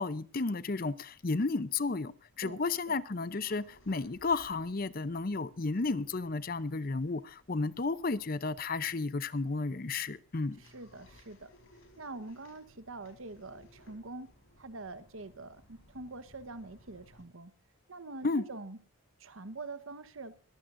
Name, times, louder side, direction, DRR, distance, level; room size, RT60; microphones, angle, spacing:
voice 1, 0.0-10.6 18.2-18.4, left 3 dB, 45° left, 0.6 m, -33 dB
sound 1, 1.1-17.2, left 1 dB, 70° left, 4.7 m, -62 dB
voice 2, 2.4-3.0 10.6-11.5 12.0-14.3 14.6-17.5 17.9-18.8 19.2-20.3, right 3 dB, 75° right, 1.2 m, -45 dB
21.5 x 15.0 x 2.6 m
head